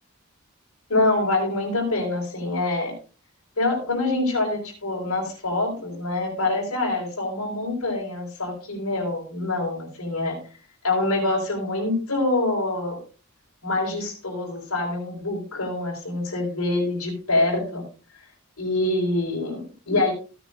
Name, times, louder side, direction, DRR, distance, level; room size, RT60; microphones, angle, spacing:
voice 1, 0.9-2.9 3.6-10.4 10.8-13.0 13.6-17.8 18.6-20.1, left 2 dB, 80° left, -5 dB, 4.7 m, -25 dB
17.0 x 9.9 x 2.6 m, 0.36 s
head